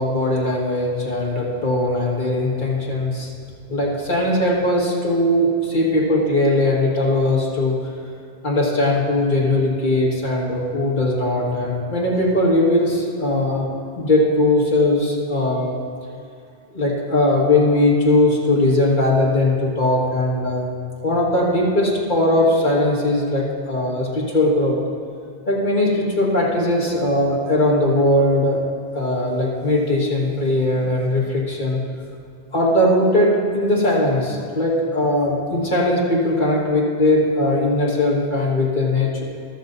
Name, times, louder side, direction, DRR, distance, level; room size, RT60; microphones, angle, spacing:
voice 1, 0.0-3.3 3.7-7.8 8.4-13.7 14.0-15.7 16.7-20.7 21.0-24.8 25.5-28.6 28.9-31.8 32.5-39.2, left 1 dB, 45° left, -4 dB, 2.0 m, -19 dB
13.5 x 13.0 x 2.7 m, 2.3 s
omnidirectional pair, 1.1 m